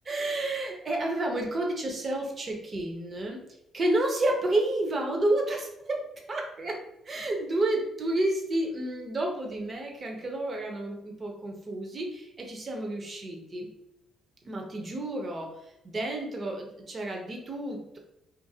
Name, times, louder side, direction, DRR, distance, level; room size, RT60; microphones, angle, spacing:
voice 1, 0.0-3.4 3.7-6.0 6.3-6.8 7.1-13.7 14.4-15.5 15.8-18.0, right 1 dB, 40° right, 1 dB, 0.7 m, -30 dB
2.6 x 2.5 x 2.7 m, 0.83 s
cardioid pair, 90°, 0 cm